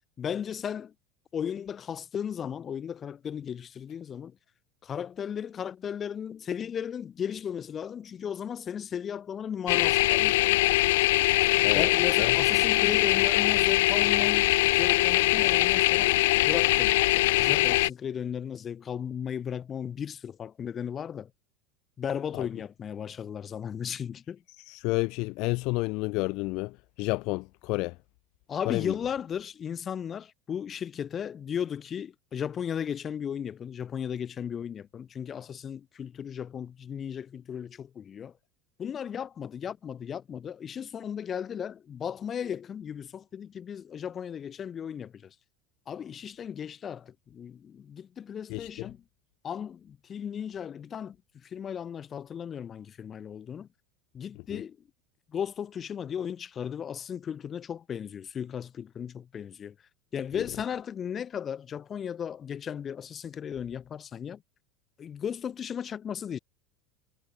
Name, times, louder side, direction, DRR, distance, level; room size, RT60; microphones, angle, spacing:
voice 1, 0.2-0.9 1.3-4.4 4.8-10.6 11.7-21.3 22.0-24.4 28.5-38.3 38.8-45.3 45.9-49.0 49.4-51.2 51.4-53.7 54.1-54.8 55.3-59.8 60.1-64.4 65.0-66.4, left 8 dB, 25° left, 2.4 m, -35 dB
sound 1, 9.7-17.9, left 19 dB, 80° left, 0.4 m, -22 dB
voice 2, 24.6-28.0 28.7-28.9 48.5-48.9 54.5-54.6, left 25 dB, 55° left, 0.8 m, -30 dB
supercardioid pair, 135°, 0 cm